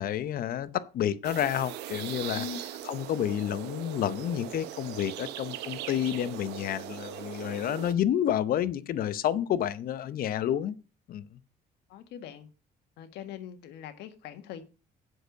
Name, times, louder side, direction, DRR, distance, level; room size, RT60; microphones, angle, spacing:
voice 1, 0.0-2.5 2.8-10.8 11.1-11.2, left 10 dB, 60° left, 0.8 m, -29 dB
sound 1, 1.2-7.9, right 12 dB, 90° right, 0.9 m, -40 dB
voice 2, 11.9-12.5 13.0-14.6, left 8 dB, 80° left, 1.6 m, -41 dB
7.8 x 6.6 x 6.4 m
cardioid pair, 110°, 17 cm